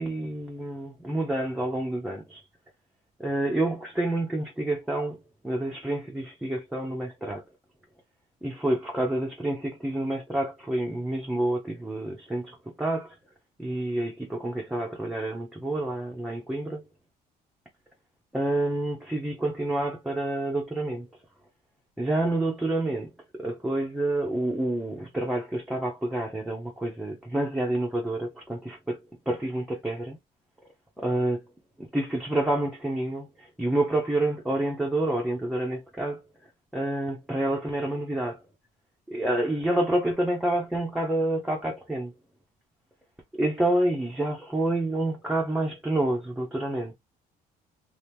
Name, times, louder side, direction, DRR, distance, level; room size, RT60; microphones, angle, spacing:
voice 1, 0.0-2.4 3.2-7.4 8.4-13.1 13.6-16.8 18.3-21.1 22.0-23.1 23.4-29.0 29.3-30.2 31.0-31.4 31.9-36.2 36.7-38.4 39.1-42.1 43.4-46.9, right 1 dB, 5° right, 0.8 m, -28 dB
2.9 x 2.6 x 3.5 m
cardioid pair, 110°, 17 cm